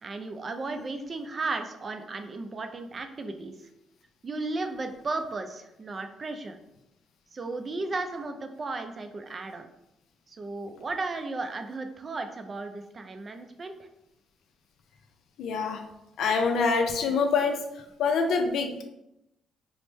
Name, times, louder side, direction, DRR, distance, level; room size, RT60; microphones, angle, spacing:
voice 1, 0.0-3.5 4.2-6.6 7.3-9.7 10.3-13.9, right 3 dB, 35° right, 6 dB, 0.4 m, -35 dB
voice 2, 15.4-15.8 16.2-17.6 18.0-18.8, left 4 dB, 75° left, 4 dB, 0.4 m, -25 dB
3.1 x 2.1 x 3.1 m, 0.86 s
cardioid pair, 90°, 0 cm